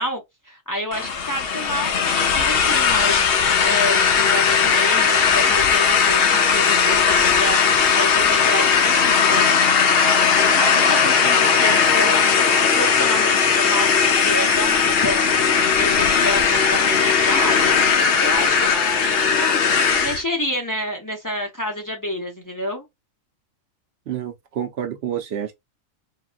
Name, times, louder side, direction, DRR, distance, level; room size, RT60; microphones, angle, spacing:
voice 1, 0.0-9.7 10.5-12.4 12.8-15.2 15.7-17.6 18.2-22.8, equal, 20° left, 0.6 m, -29 dB
sound 1, 0.9-20.2, left 6 dB, 60° left, 0.7 m, -18 dB
voice 2, 24.1-25.5, right 9 dB, 60° right, 0.8 m, -28 dB
3.8 x 2.2 x 2.2 m
omnidirectional pair, 1.4 m